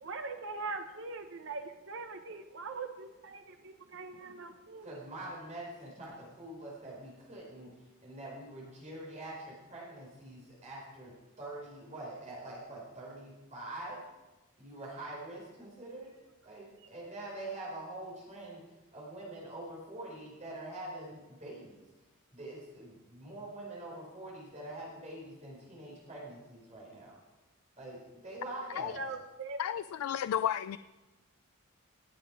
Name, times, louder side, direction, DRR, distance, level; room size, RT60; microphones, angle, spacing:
voice 1, 0.0-4.9 28.7-29.6, right 3 dB, 60° right, 0.8 m, -42 dB
voice 2, 4.8-7.7 8.0-14.0 14.6-16.1 16.4-18.6 18.9-21.8 22.3-27.1 27.8-29.0, right 1 dB, 35° right, 4.8 m, -45 dB
voice 3, 29.6-30.8, left 9 dB, 90° left, 0.3 m, -32 dB
18.5 x 7.7 x 4.9 m
head